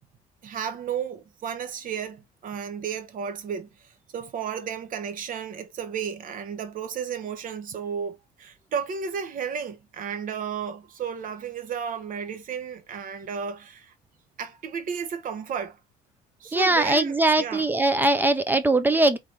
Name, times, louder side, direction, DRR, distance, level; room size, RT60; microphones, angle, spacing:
voice 1, 0.4-3.7 4.1-13.9 14.4-15.8 16.4-17.7, right 7 dB, 55° right, 1.2 m, -33 dB
voice 2, 16.5-19.2, right 2 dB, 10° right, 0.6 m, -21 dB
3.9 x 3.3 x 3.6 m
cardioid pair, 110°, 17 cm